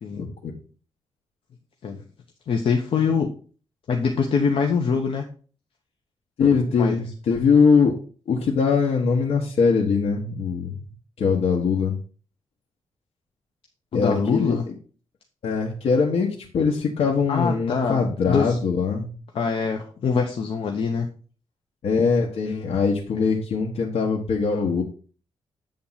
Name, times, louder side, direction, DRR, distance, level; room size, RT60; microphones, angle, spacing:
voice 1, 2.5-3.3 3.9-5.2 6.8-7.0 13.9-14.6 17.3-18.6 19.3-21.1 23.1-23.3, left 5 dB, 60° left, 2 dB, 1.0 m, -24 dB
voice 2, 6.4-7.9 8.3-10.7 11.2-12.0 13.9-14.6 15.4-16.3 16.5-19.1 21.8-24.8, left 5 dB, 75° left, -1 dB, 1.3 m, -21 dB
8.7 x 3.8 x 5.7 m, 0.39 s
wide cardioid pair, 155°, 10 cm